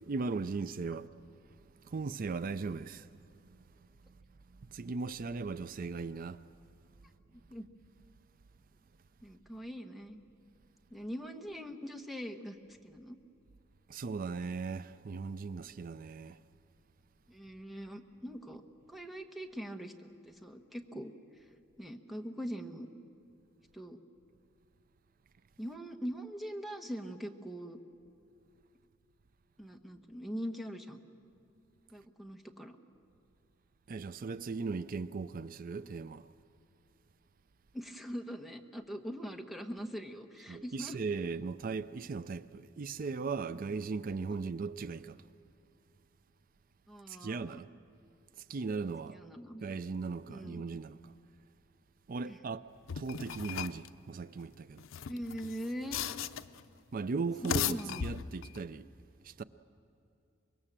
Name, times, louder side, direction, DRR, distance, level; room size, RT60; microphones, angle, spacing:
voice 1, 0.0-1.1 1.8-3.1 3.5-3.6 4.7-6.4 13.9-16.4 33.9-36.3 40.5-45.2 47.1-47.7 48.5-49.2 49.6-51.1 52.1-52.7 53.0-54.8 56.9-58.9 59.2-59.4, right 4 dB, 45° right, 0.4 m, -38 dB
voice 2, 7.3-7.7 9.2-10.2 10.9-13.2 17.3-18.6 18.9-21.1 21.8-22.9 23.7-24.0 25.6-27.8 29.6-31.0 31.9-32.8 37.7-41.0 46.9-47.6 49.1-49.6 50.3-50.6 52.2-52.4 55.1-56.0 57.4-58.1, equal, ahead, 1.2 m, -42 dB
sound 1, 52.9-53.9 54.8-56.6 57.3-58.6, left 8 dB, 85° left, 0.6 m, -37 dB
25.0 x 22.0 x 7.4 m
head